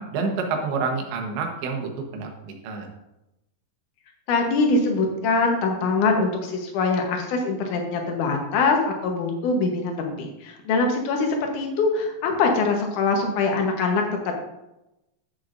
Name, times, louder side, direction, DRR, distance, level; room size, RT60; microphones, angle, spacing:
voice 1, 0.0-2.9, right 4 dB, 90° right, 2 dB, 3.5 m, -28 dB
voice 2, 4.3-14.3, left 3 dB, 70° left, 2 dB, 2.0 m, -23 dB
11.0 x 7.9 x 2.6 m, 0.92 s
omnidirectional pair, 4.9 m